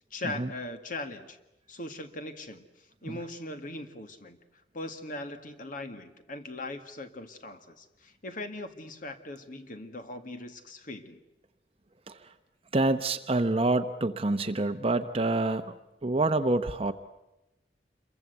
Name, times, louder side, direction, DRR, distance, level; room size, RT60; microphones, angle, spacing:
voice 1, 0.1-1.4 1.7-2.6 3.0-4.4 4.7-11.2, left 2 dB, 50° left, 8 dB, 1.9 m, -40 dB
voice 2, 12.7-15.7 16.0-16.9, right 2 dB, 35° right, 8 dB, 0.9 m, -27 dB
27.5 x 23.0 x 8.1 m, 0.96 s
head